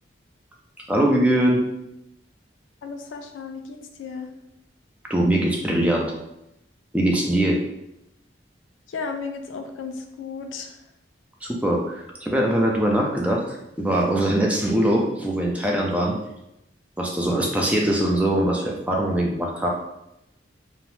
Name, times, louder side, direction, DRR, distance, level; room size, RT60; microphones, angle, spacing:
voice 1, 0.9-1.6 5.1-6.1 6.9-7.6 11.4-16.2 17.0-19.7, right 1 dB, 5° right, -1 dB, 0.3 m, -22 dB
voice 2, 2.8-4.3 8.9-10.8, left 4 dB, 85° left, 5 dB, 0.4 m, -34 dB
2.7 x 2.0 x 3.0 m, 0.86 s
head